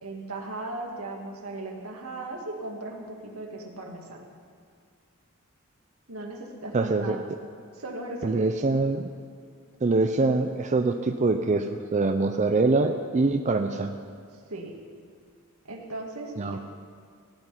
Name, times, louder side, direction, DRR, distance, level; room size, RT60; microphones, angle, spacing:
voice 1, 0.0-4.2 6.1-7.2 7.7-8.5 14.5-14.7 15.6-16.6, right 2 dB, 80° right, 1 dB, 2.0 m, -37 dB
voice 2, 6.7-7.2 8.2-9.0 9.8-14.0 16.4-16.6, right 3 dB, 35° right, 6 dB, 0.5 m, -24 dB
16.5 x 6.0 x 9.7 m, 2.1 s
head